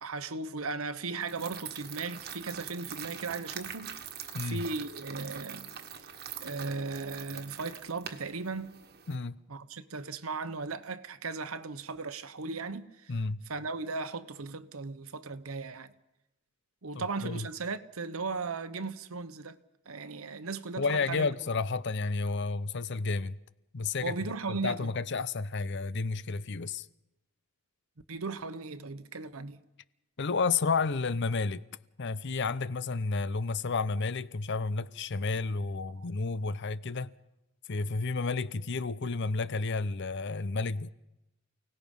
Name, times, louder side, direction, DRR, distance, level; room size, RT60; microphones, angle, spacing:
voice 1, 0.0-3.9 4.4-5.7 6.4-8.8 9.5-13.1 13.5-15.9 16.8-19.6 19.9-21.3 24.0-24.9 28.1-29.6 36.0-36.1, right 4 dB, 75° right, 1.0 m, -37 dB
sound 1, 1.2-9.2, right 8 dB, 45° right, 1.5 m, -44 dB
voice 2, 4.3-4.6 9.1-9.3 13.1-13.4 16.9-17.5 20.8-23.4 23.7-26.9 30.2-31.6 32.0-37.1 37.7-40.9, left 4 dB, 55° left, 0.7 m, -31 dB
29.5 x 18.5 x 5.4 m
head